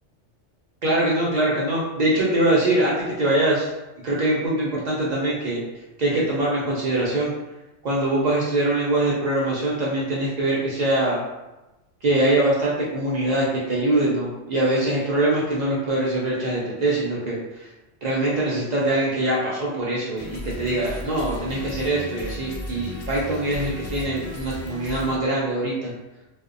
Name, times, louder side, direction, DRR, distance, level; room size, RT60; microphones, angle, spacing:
voice 1, 0.8-3.7 4.0-5.6 6.0-7.3 7.8-11.2 12.0-17.7 18.0-25.9, right 1 dB, 80° right, -6 dB, 0.3 m, -23 dB
sound 1, 20.2-25.2, left 1 dB, 65° left, 0.3 m, -35 dB
2.5 x 2.0 x 2.4 m, 1.0 s
omnidirectional pair, 1.3 m